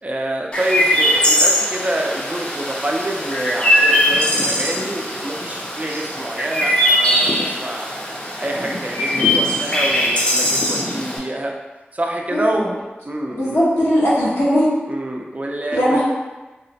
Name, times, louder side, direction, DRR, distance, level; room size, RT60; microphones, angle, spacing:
voice 1, 0.0-8.1 8.4-11.6 11.9-12.7 13.0-13.7 14.9-16.0, right 1 dB, 40° right, 0 dB, 0.4 m, -26 dB
Chirp tweet, 0.5-11.2, equal, 30° left, 0.6 m, -20 dB
voice 2, 12.3-12.7 13.4-14.7 15.7-16.0, equal, 80° left, -9 dB, 1.0 m, -18 dB
2.8 x 2.1 x 2.7 m, 1.1 s
wide cardioid pair, 40°, 4 cm